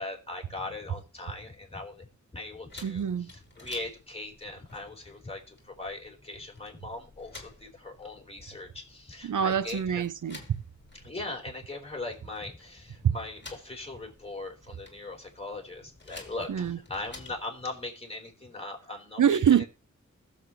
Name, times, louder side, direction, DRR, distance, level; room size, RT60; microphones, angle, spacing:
voice 1, 0.0-2.1 2.3-10.1 11.0-19.4, left 2 dB, 20° left, 4.2 m, -40 dB
sound 1, 2.7-17.5, left 3 dB, 35° left, 2.9 m, -52 dB
voice 2, 2.8-3.3 9.2-10.6 13.0-13.1 16.5-16.8 19.2-19.6, right 8 dB, 85° right, 0.7 m, -25 dB
21.0 x 7.4 x 3.1 m
wide cardioid pair, 80°, 30 cm